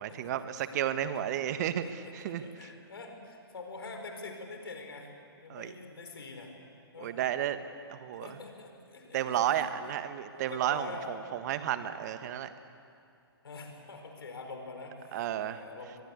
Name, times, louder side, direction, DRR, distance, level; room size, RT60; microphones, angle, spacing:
voice 1, 0.0-2.7 5.5-5.7 7.0-7.6 7.9-8.4 9.1-12.5 15.1-15.6, right 11 dB, 45° right, 11 dB, 1.5 m, -32 dB
voice 2, 1.8-5.1 5.4-6.5 6.9-7.2 8.2-9.6 10.3-11.1 13.4-16.0, left 3 dB, 65° left, 4 dB, 4.8 m, -45 dB
23.0 x 21.5 x 8.3 m, 2.4 s
figure-of-eight pair, 125°, 13 cm